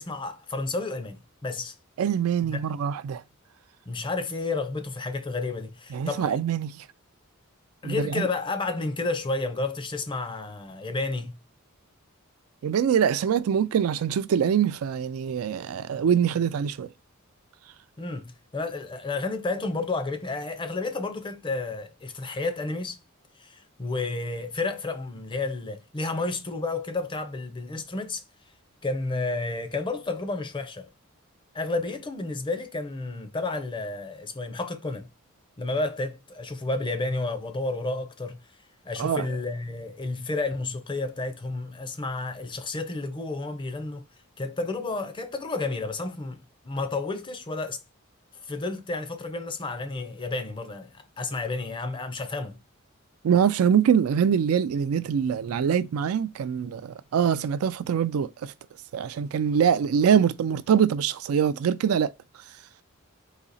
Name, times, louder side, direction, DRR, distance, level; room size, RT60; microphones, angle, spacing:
voice 1, 0.0-1.7 2.4-2.6 3.9-6.4 7.8-11.4 18.0-23.0 23.4-28.2 28.8-30.9 31.5-35.1 35.6-38.4 38.8-44.0 44.4-47.8 48.4-52.6, left 3 dB, 20° left, 0.5 m, -31 dB
voice 2, 2.0-3.2 5.9-6.8 7.8-8.3 12.6-16.9 39.0-39.3 53.2-58.5 58.9-62.1, right 8 dB, 75° right, 0.3 m, -24 dB
4.1 x 2.7 x 4.0 m
head